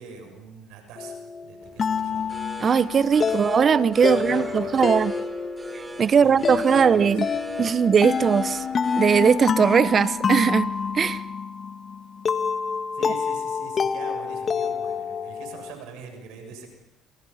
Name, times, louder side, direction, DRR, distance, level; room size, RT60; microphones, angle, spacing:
voice 1, 0.0-2.3 3.3-3.4 4.1-4.9 6.1-7.4 7.8-8.0 12.9-16.7, right 5 dB, 80° right, 7.1 m, -43 dB
sound 1, 1.0-15.7, left 6 dB, 40° left, 1.7 m, -28 dB
sound 2, 1.6-11.2, right 3 dB, 15° right, 3.2 m, -43 dB
voice 2, 2.6-5.1 6.0-7.3 7.6-8.6 9.0-11.2, right 7 dB, 40° right, 0.9 m, -20 dB
29.0 x 28.0 x 5.7 m
supercardioid pair, 85°, 0 cm